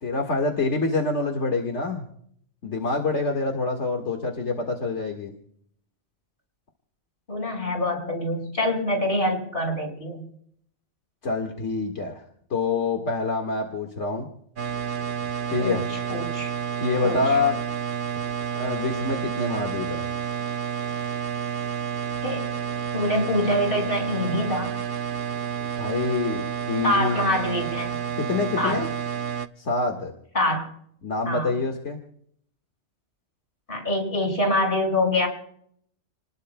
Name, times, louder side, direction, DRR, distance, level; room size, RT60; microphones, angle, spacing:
voice 1, 0.0-2.1 2.6-5.3 11.2-12.2 12.5-14.3 15.5-15.8 16.8-17.6 18.6-20.1 25.8-27.2 28.2-28.9 29.6-30.1 31.0-32.0, left 3 dB, 85° left, 2 dB, 2.1 m, -26 dB
voice 2, 7.3-10.2 15.6-16.5 17.0-17.2 22.2-22.5 22.9-24.8 26.8-28.0 28.6-28.8 30.3-30.7 31.3-31.5 33.7-35.3, left 1 dB, 50° left, 1 dB, 5.6 m, -25 dB
sound 1, 14.6-29.5, right 8 dB, 50° right, 0.9 m, -30 dB
30.0 x 20.5 x 2.2 m, 0.67 s
omnidirectional pair, 1.2 m